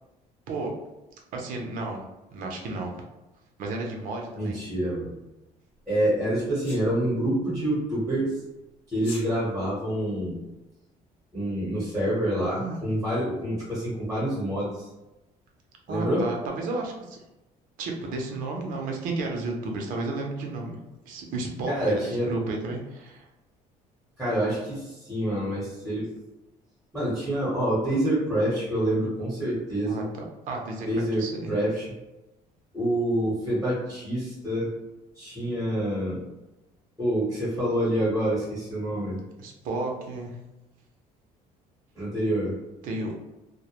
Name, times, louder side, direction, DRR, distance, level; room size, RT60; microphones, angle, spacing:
voice 1, 1.3-2.0 2.3-2.9 3.6-4.6 12.4-12.8 15.9-17.2 17.8-20.8 21.1-23.3 29.8-30.0 30.5-31.5 39.4-40.4 42.8-43.1, right 2 dB, 70° right, 1 dB, 0.5 m, -32 dB
voice 2, 4.3-5.2 5.9-8.4 8.9-10.4 11.3-14.9 15.9-16.3 21.7-22.3 24.2-26.1 26.9-30.1 30.9-31.2 31.5-31.9 32.7-34.7 35.2-36.2 37.0-39.2 41.9-42.5, right 1 dB, 5° right, -8 dB, 0.9 m, -27 dB
Sneeze, 6.6-6.8 8.9-9.3, left 2 dB, 80° left, 1.0 m, -40 dB
2.1 x 2.0 x 2.8 m, 0.98 s
cardioid pair, 130°, 14 cm